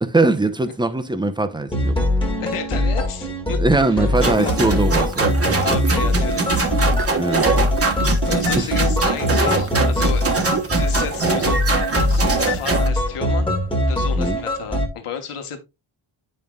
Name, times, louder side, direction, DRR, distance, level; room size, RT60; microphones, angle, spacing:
voice 1, 0.0-2.0 3.6-5.3 7.2-7.5 8.6-8.7 14.2-14.4, right 2 dB, 10° right, 0.7 m, -21 dB
sound 1, 1.7-14.9, left 1 dB, 10° left, 1.5 m, -22 dB
voice 2, 2.4-3.6 3.9-4.8 5.6-6.7 7.9-10.3 10.8-13.6 13.9-15.6, left 7 dB, 90° left, 1.4 m, -32 dB
sound 2, 4.2-12.9, right 3 dB, 30° right, 1.2 m, -22 dB
Liquid, 4.7-10.9 11.1-11.2, right 6 dB, 45° right, 1.4 m, -30 dB
9.3 x 5.4 x 2.4 m
wide cardioid pair, 125°, 50 cm